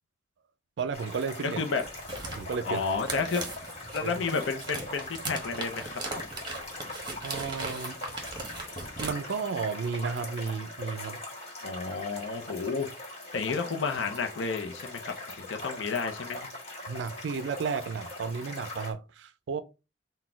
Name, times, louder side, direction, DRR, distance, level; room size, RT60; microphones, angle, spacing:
voice 1, 0.8-1.6 2.4-2.8 4.0-4.1 7.2-8.0 9.0-11.2 16.9-19.6, right 5 dB, 70° right, 0.4 m, -33 dB
sound 1, 0.9-18.9, left 1 dB, 35° left, 1.6 m, -41 dB
sound 2, 1.8-9.1, right 3 dB, 25° right, 1.1 m, -39 dB
voice 2, 2.6-3.4 3.9-6.0 11.6-12.9 13.3-16.4, left 4 dB, 85° left, 0.6 m, -31 dB
4.1 x 2.2 x 4.3 m
head